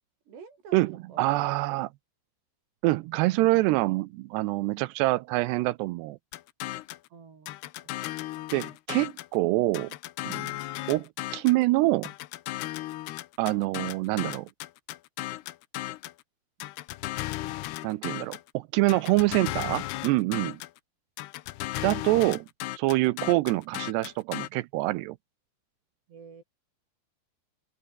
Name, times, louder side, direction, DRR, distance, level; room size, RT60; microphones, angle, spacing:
voice 1, 0.3-1.6 7.1-8.1 8.4-8.5 10.7-10.9 26.1-26.4, right 5 dB, 65° right, 7.2 m, -50 dB
voice 2, 1.2-1.9 2.8-6.2 8.5-9.9 10.2-10.5 10.9-12.1 13.4-14.5 17.8-20.6 21.8-22.5 22.8-25.2, right 19 dB, 85° right, 2.5 m, -25 dB
sound 1, 6.3-7.1 7.5-9.4 9.7-11.6 12.0-16.2 16.6-18.5 18.9-20.8 21.2-24.5, left 17 dB, 75° left, 2.6 m, -36 dB
open air
omnidirectional pair, 5.4 m